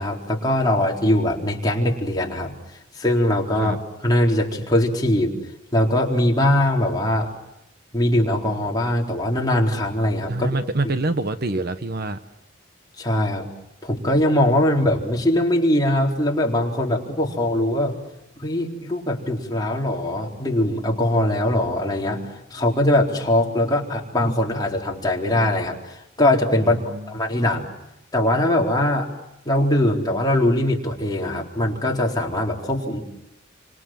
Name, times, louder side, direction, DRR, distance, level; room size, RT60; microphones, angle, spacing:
voice 1, 0.0-2.6 3.0-3.8 4.0-5.4 5.7-7.3 7.9-10.5 10.8-10.9 13.0-13.5 13.8-17.9 18.4-27.7 28.1-29.1 29.4-33.0, left 1 dB, 20° left, -2 dB, 4.2 m, -21 dB
voice 2, 10.3-12.2 26.6-27.1, right 2 dB, 50° right, 10 dB, 1.1 m, -26 dB
29.5 x 26.0 x 7.7 m, 0.87 s
head